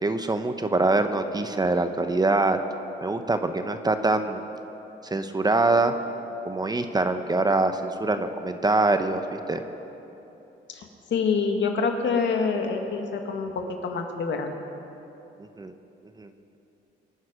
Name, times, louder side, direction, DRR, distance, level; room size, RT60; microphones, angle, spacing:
voice 1, 0.0-2.6 3.0-4.4 5.0-5.9 6.4-9.6 15.6-15.7 16.2-16.3, right 2 dB, 20° right, 8 dB, 0.8 m, -24 dB
voice 2, 10.7-14.5, left 5 dB, 65° left, 4 dB, 1.8 m, -26 dB
24.0 x 9.4 x 5.1 m, 3.0 s
cardioid pair, 90°, 20 cm